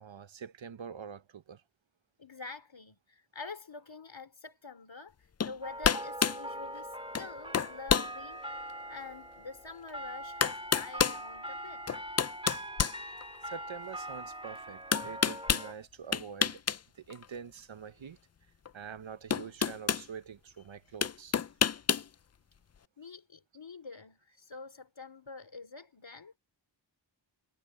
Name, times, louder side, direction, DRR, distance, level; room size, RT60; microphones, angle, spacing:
voice 1, 0.0-1.6 13.4-16.6 16.9-18.2 18.7-21.3, right 7 dB, 90° right, 0.9 m, -45 dB
voice 2, 2.2-5.1 5.4-8.4 8.9-11.9 23.0-26.4, left 4 dB, 80° left, 3.6 m, -47 dB
sound 1, 5.4-5.6 5.8-6.4 7.1-7.3 7.5-8.1 8.7-8.8 9.9-10.0 10.4-11.2 11.9-13.5 14.9-15.7 16.1-16.8 17.1-17.2 18.7-18.8 19.3-20.1 21.0-22.1, left 7 dB, 35° left, 0.4 m, -28 dB
sound 2, 5.6-15.7, right 1 dB, 10° right, 2.2 m, -42 dB
wide cardioid pair, 65°, 45 cm